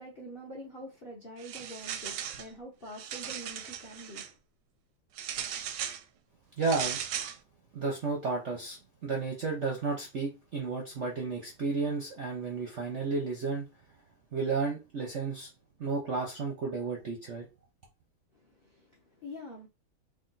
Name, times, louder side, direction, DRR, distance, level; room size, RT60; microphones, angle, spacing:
voice 1, 0.0-4.2 18.4-19.7, equal, 45° left, 0.7 m, -45 dB
sound 1, 1.4-2.5 2.9-4.3 5.2-6.0 6.6-7.4, right 9 dB, 75° right, 1.1 m, -37 dB
voice 2, 6.6-7.0 7.7-13.7 14.3-15.5 15.8-17.5, right 4 dB, 55° right, 0.8 m, -32 dB
3.5 x 2.6 x 3.9 m
omnidirectional pair, 2.2 m